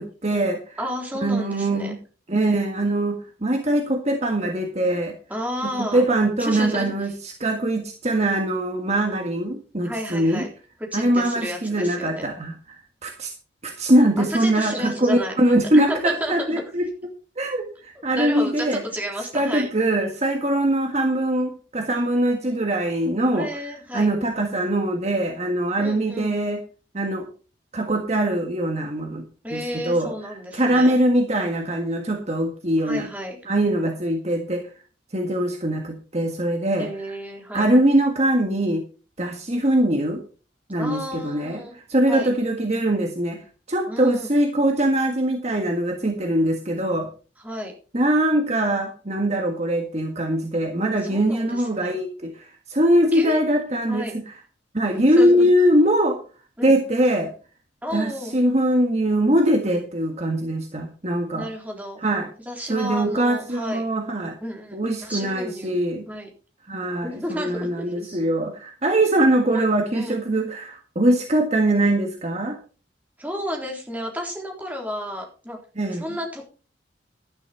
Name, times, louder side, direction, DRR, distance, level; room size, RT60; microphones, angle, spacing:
voice 1, 0.0-0.8 1.2-2.0 2.3-5.2 5.6-10.4 10.9-13.3 13.6-16.9 17.4-18.8 19.3-23.5 23.9-26.6 26.9-27.3 27.7-29.2 29.5-30.1 30.5-33.1 33.5-34.6 35.1-36.9 37.5-38.8 39.2-40.2 40.7-41.6 41.9-43.4 43.7-47.1 47.9-54.3 54.7-56.2 56.6-57.3 57.9-61.5 62.0-62.3 62.7-64.4 64.7-66.1 66.7-72.6 75.8-76.0, right 1 dB, 35° right, 3 dB, 1.6 m, -22 dB
voice 2, 0.8-2.0 5.3-6.1 6.4-6.9 9.8-10.5 10.9-12.3 14.2-15.3 15.7-16.6 18.1-19.7 23.3-24.1 25.8-26.4 29.4-30.9 32.8-33.4 36.8-37.7 40.8-41.8 42.1-42.3 43.9-44.3 47.4-47.7 51.0-52.0 53.1-53.4 53.9-54.1 54.9-55.5 56.6-56.8 57.8-58.4 61.3-62.0 62.4-63.8 64.4-65.7 66.1-66.3 67.0-67.7 68.0-68.2 69.5-69.7 69.9-70.2 73.2-75.6 75.9-76.4, equal, 10° right, 1 dB, 3.7 m, -32 dB
12.0 x 10.5 x 4.5 m, 0.36 s
head